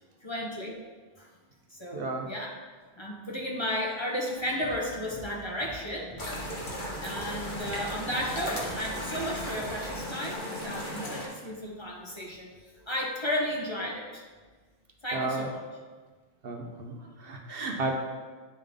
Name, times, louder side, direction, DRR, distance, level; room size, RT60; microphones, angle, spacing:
voice 1, 0.2-0.8 1.2-1.3 1.7-2.5 2.9-6.1 6.6-6.7 7.0-14.2 15.0-15.6, left 1 dB, 30° left, -3 dB, 0.9 m, -34 dB
voice 2, 1.9-2.3 15.1-15.5 16.4-17.9, right 3 dB, 65° right, 2 dB, 1.0 m, -33 dB
sound 1, 4.4-10.0, right 1 dB, 10° right, 1.4 m, -46 dB
sound 2, 6.2-11.3, equal, 50° left, 1.4 m, -36 dB
9.9 x 3.7 x 3.6 m, 1.4 s
omnidirectional pair, 1.1 m